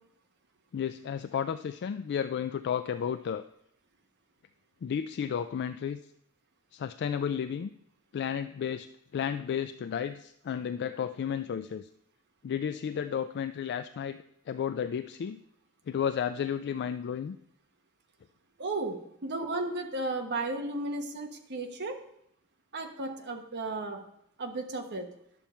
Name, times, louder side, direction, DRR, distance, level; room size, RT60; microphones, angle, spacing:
voice 1, 0.7-3.4 4.8-6.0 6.7-7.7 8.1-8.9 9.1-11.9 12.4-15.4 15.9-17.4, left 8 dB, 50° left, 10 dB, 0.3 m, -32 dB
voice 2, 18.6-19.0 19.2-21.9 22.7-24.0 24.4-25.1, right 2 dB, 50° right, 4 dB, 1.2 m, -34 dB
10.5 x 7.0 x 4.3 m, 0.76 s
head